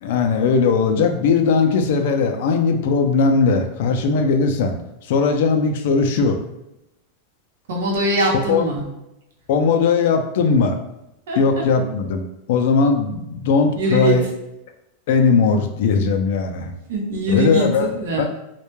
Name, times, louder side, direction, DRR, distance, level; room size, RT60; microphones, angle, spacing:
voice 1, 0.0-4.8 5.1-6.4 8.5-8.6 9.5-10.8 11.4-12.2 12.5-14.2 15.1-16.7 17.3-17.9 18.2-18.3, left 5 dB, 55° left, 5 dB, 0.3 m, -18 dB
voice 2, 7.7-8.8 11.3-11.6 13.7-14.2 16.9-18.2, right 1 dB, 85° right, -2 dB, 0.8 m, -22 dB
2.2 x 2.1 x 3.0 m, 0.87 s
supercardioid pair, 175°, 0 cm